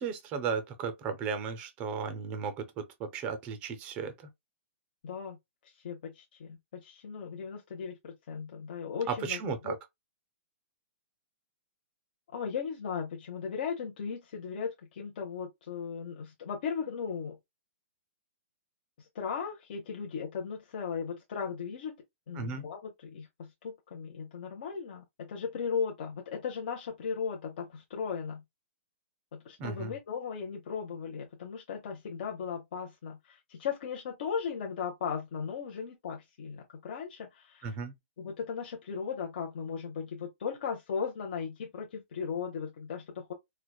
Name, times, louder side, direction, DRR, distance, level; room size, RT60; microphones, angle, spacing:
voice 1, 0.0-4.1 9.1-9.8 22.4-22.6 29.6-29.9 37.6-37.9, right 6 dB, 15° right, 0.5 m, -35 dB
voice 2, 5.0-5.4 5.7-9.7 12.3-17.4 19.0-21.9 22.3-28.4 29.3-37.7 38.2-43.3, left 6 dB, 45° left, 0.6 m, -37 dB
4.5 x 2.1 x 2.2 m
hypercardioid pair, 170°, 7 cm